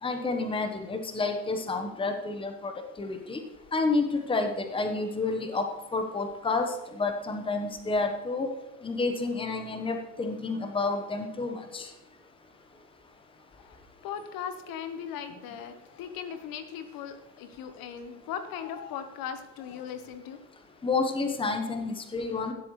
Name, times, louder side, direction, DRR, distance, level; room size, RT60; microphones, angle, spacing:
voice 1, 0.0-3.4 3.7-5.7 5.9-8.5 8.8-11.9 20.8-22.5, left 3 dB, 10° left, 6 dB, 1.1 m, -30 dB
voice 2, 13.6-20.4, left 8 dB, 50° left, 10 dB, 1.2 m, -38 dB
17.0 x 7.9 x 3.2 m, 0.96 s
hypercardioid pair, 90°, 45 cm